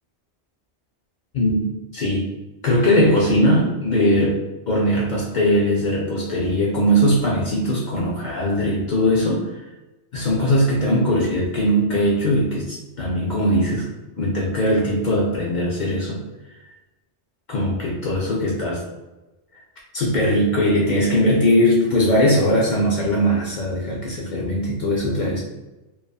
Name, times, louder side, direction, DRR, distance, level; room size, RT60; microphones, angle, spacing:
voice 1, 1.9-2.3 2.6-9.5 10.1-13.9 14.2-16.2 17.5-18.8 19.9-25.4, equal, 60° left, -4 dB, 0.5 m, -20 dB
2.6 x 2.3 x 2.3 m, 1.1 s
omnidirectional pair, 1.1 m